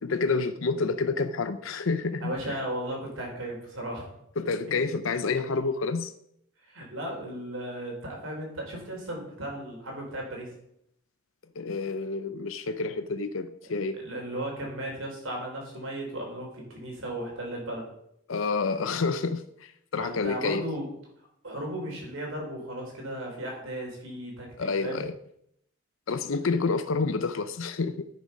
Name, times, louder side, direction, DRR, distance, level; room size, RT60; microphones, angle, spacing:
voice 1, 0.0-2.3 4.4-6.1 11.6-14.0 18.3-20.6 24.6-25.1 26.1-28.1, left 4 dB, 75° left, 10 dB, 0.6 m, -28 dB
voice 2, 2.2-4.1 6.6-10.5 13.6-17.9 20.0-20.9 21.4-25.0, right 1 dB, 75° right, 0 dB, 3.7 m, -36 dB
10.5 x 6.3 x 5.4 m, 0.74 s
head